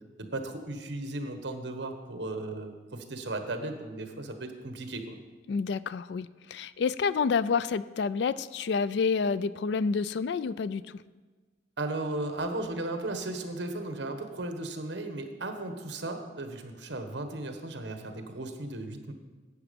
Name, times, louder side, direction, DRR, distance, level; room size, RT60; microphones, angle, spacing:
voice 1, 0.3-5.2 11.8-19.1, right 2 dB, 65° right, 6 dB, 1.2 m, -36 dB
voice 2, 5.5-11.0, left 5 dB, 65° left, 16 dB, 0.3 m, -29 dB
12.0 x 8.4 x 5.2 m, 1.3 s
head